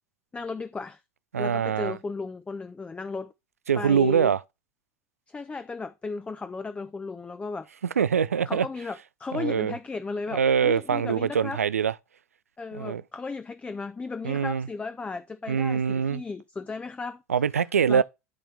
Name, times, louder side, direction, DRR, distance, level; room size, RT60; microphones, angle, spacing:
voice 1, 0.3-1.0 1.4-3.3 3.8-4.3 5.3-7.7 8.5-11.6 12.6-17.2 17.9-18.0, left 4 dB, 15° left, 0.6 m, -35 dB
voice 2, 1.3-2.0 3.7-4.4 8.0-8.7 9.3-9.7 10.3-11.9 12.7-13.0 14.2-14.7 15.5-16.2 17.3-18.0, right 7 dB, 85° right, 0.3 m, -24 dB
12.5 x 4.2 x 3.3 m
figure-of-eight pair, 75°, 8 cm